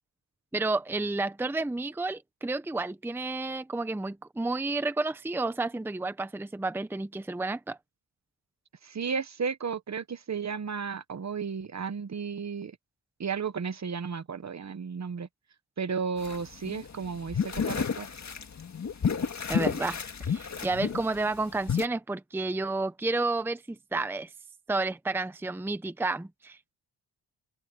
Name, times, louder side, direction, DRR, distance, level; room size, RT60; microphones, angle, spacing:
voice 1, 0.5-7.8 19.5-24.3 24.7-26.7, right 2 dB, 5° right, 0.8 m, -31 dB
voice 2, 8.8-12.8 13.2-15.3 15.8-18.1, right 6 dB, 35° right, 1.0 m, -33 dB
sound 1, 16.2-21.9, left 6 dB, 40° left, 1.7 m, -31 dB
open air
wide cardioid pair, 150°, 45 cm